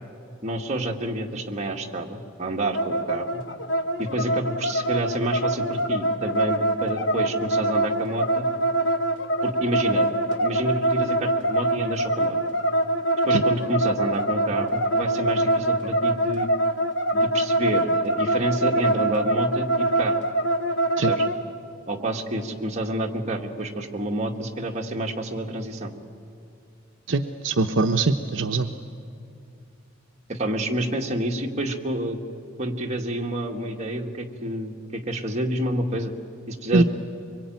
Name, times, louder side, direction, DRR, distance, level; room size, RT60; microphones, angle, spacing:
voice 1, 0.4-3.4 4.0-8.5 9.4-10.1 10.4-12.4 13.3-16.5 17.1-20.1 21.0-21.2 21.9-25.9 30.3-32.2 32.6-36.1 36.5-36.8, right 1 dB, 35° right, 1 dB, 1.9 m, -28 dB
sound 1, 2.7-21.4, right 1 dB, 65° left, 1.3 m, -24 dB
voice 2, 27.1-28.7 36.7-36.8, right 3 dB, 65° right, 5 dB, 0.8 m, -22 dB
24.5 x 22.5 x 9.4 m, 2.6 s
head